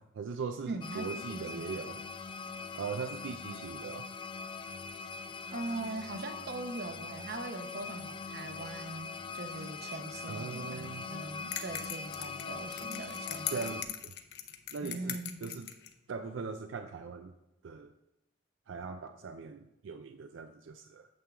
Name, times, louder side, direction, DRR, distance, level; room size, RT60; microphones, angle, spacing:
voice 1, 0.1-2.0 2.7-4.1 10.3-11.1 13.5-14.1 14.7-15.7 16.1-17.3 17.6-17.9 18.7-21.1, right 5 dB, 80° right, 8 dB, 0.4 m, -40 dB
voice 2, 0.6-2.0 5.5-13.8 14.8-15.5, right 2 dB, 55° right, 7 dB, 0.8 m, -41 dB
sound 1, 0.8-13.8, left 4 dB, 25° left, 0.3 m, -42 dB
sound 2, 11.5-15.9, left 10 dB, 60° left, 0.7 m, -40 dB
8.5 x 3.7 x 6.9 m, 0.91 s
head